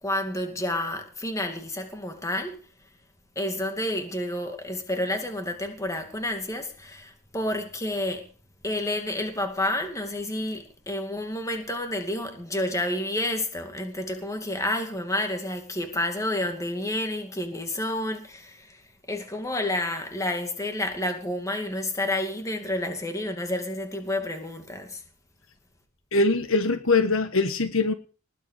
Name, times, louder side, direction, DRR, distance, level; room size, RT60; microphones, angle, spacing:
voice 1, 0.0-2.6 3.4-8.3 8.6-25.0, left 1 dB, 15° left, 2.4 m, -30 dB
voice 2, 26.1-27.9, left 3 dB, 60° left, 1.5 m, -22 dB
19.5 x 8.2 x 6.5 m
head